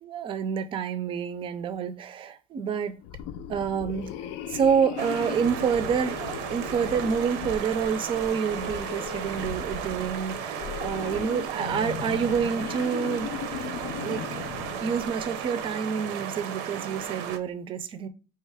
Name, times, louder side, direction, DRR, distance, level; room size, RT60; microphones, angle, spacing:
voice 1, 0.0-3.0 3.5-4.1 4.5-13.3 14.0-14.2 14.8-18.1, right 7 dB, 30° right, 0.4 m, -28 dB
sound 1, 3.0-15.5, left 10 dB, 85° left, 0.5 m, -38 dB
sound 2, 5.0-17.4, right 9 dB, 80° right, 0.6 m, -35 dB
sound 3, 6.7-10.7, left 5 dB, 30° left, 0.4 m, -48 dB
4.6 x 2.9 x 3.3 m
cardioid pair, 175°, 17 cm